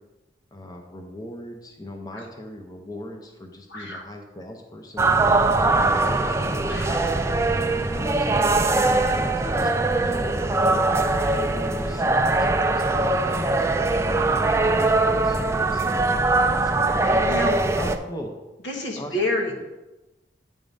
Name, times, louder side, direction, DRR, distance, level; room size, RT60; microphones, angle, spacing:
voice 1, 0.5-6.7 7.5-9.7 10.1-16.3 16.6-17.4 17.8-18.3 19.0-19.2 19.4-19.6, left 1 dB, 20° left, 2 dB, 0.7 m, -38 dB
voice 2, 3.7-4.1 6.6-7.0 17.0-17.6 18.6-19.6, left 1 dB, 80° left, 2 dB, 1.3 m, -28 dB
sound 1, 5.0-18.0, right 2 dB, 15° right, 0.3 m, -21 dB
9.1 x 3.7 x 5.2 m, 1.1 s
head